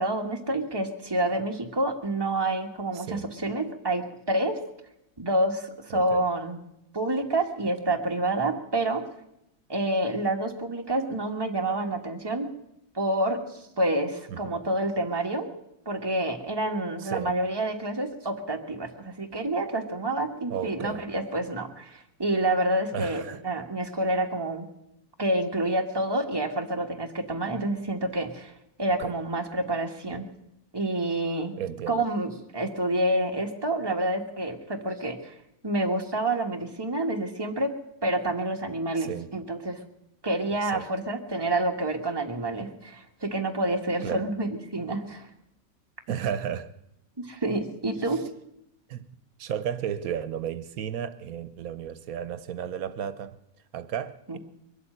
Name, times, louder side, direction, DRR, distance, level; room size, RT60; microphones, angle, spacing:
voice 1, 0.0-4.6 5.2-6.6 6.9-9.0 9.7-12.5 12.9-15.5 15.8-24.7 25.2-28.5 28.8-30.2 30.7-31.5 31.9-35.3 35.6-37.7 38.0-39.8 40.2-45.3 47.2-48.2 54.3-54.4, right 1 dB, 15° right, 1.5 m, -28 dB
voice 2, 2.9-3.3 5.9-6.3 14.3-14.5 17.0-17.3 20.5-21.1 22.9-23.4 29.0-29.1 31.6-32.0 39.0-39.3 40.6-40.9 44.0-44.3 46.1-46.7 48.0-48.2 48.9-49.1 49.4-53.4 53.7-54.4, right 9 dB, 85° right, 1.2 m, -33 dB
22.0 x 8.3 x 7.8 m
omnidirectional pair, 1.5 m